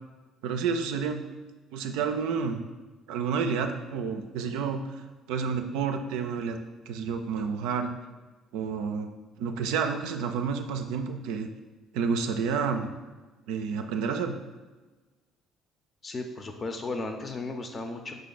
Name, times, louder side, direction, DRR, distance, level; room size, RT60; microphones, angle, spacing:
voice 1, 0.4-1.2 1.7-2.6 3.1-5.0 5.3-6.6 6.9-7.9 8.5-9.1 9.4-11.5 11.9-12.9 13.5-14.4, right 6 dB, 75° right, 6 dB, 0.3 m, -29 dB
voice 2, 16.0-18.2, left 3 dB, 35° left, 5 dB, 0.6 m, -35 dB
5.0 x 2.6 x 4.0 m, 1.2 s
hypercardioid pair, 55°, 0 cm